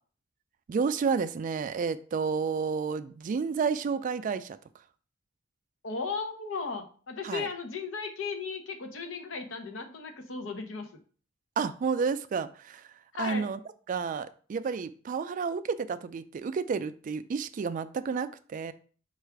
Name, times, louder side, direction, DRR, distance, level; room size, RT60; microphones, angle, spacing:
voice 1, 0.7-4.6 7.2-7.5 11.6-12.9 13.2-13.6 13.9-18.7, right 5 dB, 40° right, 12 dB, 0.3 m, -31 dB
voice 2, 5.8-10.9 13.1-13.5, left 4 dB, 80° left, 4 dB, 0.8 m, -36 dB
4.7 x 2.4 x 4.5 m, 0.42 s
head